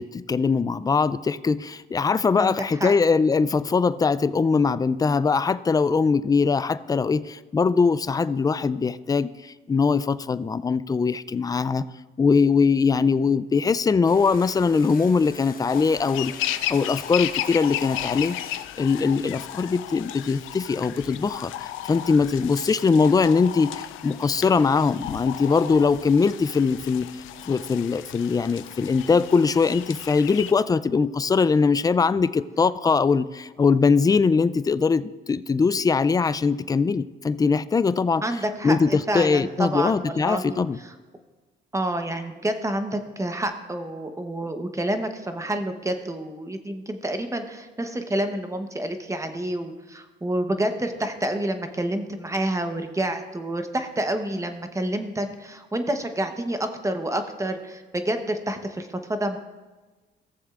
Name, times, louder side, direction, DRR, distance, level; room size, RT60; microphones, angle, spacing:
voice 1, 0.0-11.9 12.2-18.4 18.8-27.1 27.5-38.2 38.6-40.8, left 5 dB, 20° left, 15 dB, 0.3 m, -21 dB
voice 2, 2.4-2.9 38.2-40.9 41.7-59.4, right 1 dB, 15° right, 7 dB, 0.9 m, -28 dB
sound 1, 14.1-19.5, left 5 dB, 45° left, 1.0 m, -45 dB
sound 2, 15.7-30.5, left 12 dB, 85° left, 0.4 m, -34 dB
16.5 x 7.2 x 2.5 m, 1.2 s
cardioid pair, 90°, 20 cm